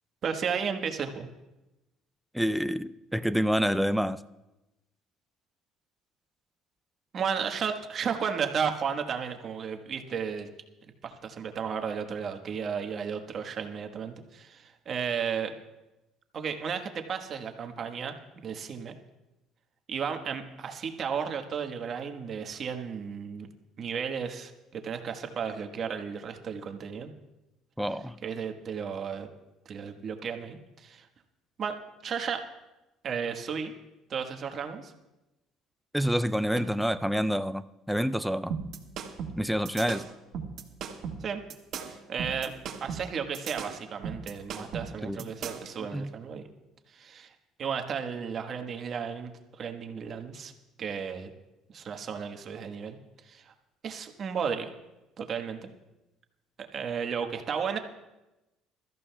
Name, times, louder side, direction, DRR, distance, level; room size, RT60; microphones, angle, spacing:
voice 1, 0.2-1.3 7.1-10.5 11.0-15.5 16.3-18.1 18.4-18.9 19.9-23.5 23.8-27.1 28.2-29.3 29.6-31.1 31.6-31.7 32.0-32.4 33.0-33.7 34.1-34.9 36.5-36.7 41.2-41.4 41.8-42.5 42.8-46.5 46.9-47.3 47.6-49.3 49.6-50.5 50.8-51.3 51.7-53.0 53.3-53.5 53.8-54.7 55.2-55.6 56.7-57.8, right 6 dB, 45° right, 5 dB, 1.3 m, -33 dB
voice 2, 2.3-4.2 27.8-28.2 35.9-38.6 39.4-40.1 45.0-45.3 45.8-46.1, equal, ahead, 11 dB, 0.4 m, -28 dB
sound 1, 38.5-45.7, right 6 dB, 60° right, 1.6 m, -37 dB
23.0 x 14.0 x 2.3 m, 1.0 s
cardioid pair, 125°, 0 cm